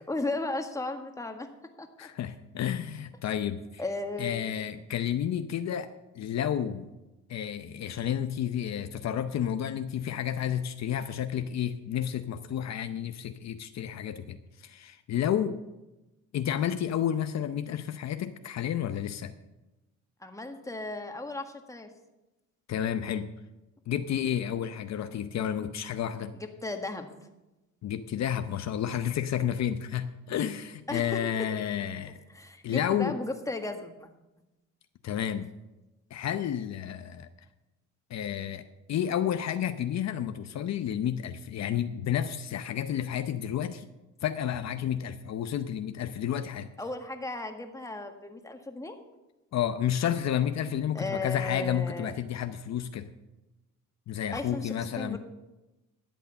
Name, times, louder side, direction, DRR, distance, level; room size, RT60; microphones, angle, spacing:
voice 1, 0.1-1.5 1.8-2.1 3.8-4.5 20.2-21.9 26.3-27.1 30.9-31.2 32.3-34.1 46.8-49.0 50.9-52.1 54.3-55.2, left 2 dB, 10° left, 5 dB, 1.6 m, -35 dB
voice 2, 2.0-3.8 4.2-5.9 6.1-6.9 7.3-15.6 16.3-19.3 22.7-23.3 23.9-26.3 27.8-32.2 32.6-33.2 35.0-35.5 36.1-37.3 38.1-38.6 38.9-43.9 44.2-46.7 49.5-53.1 54.1-55.2, left 9 dB, 60° left, 9 dB, 0.7 m, -31 dB
12.5 x 8.4 x 6.9 m, 1.0 s
cardioid pair, 90°, 30 cm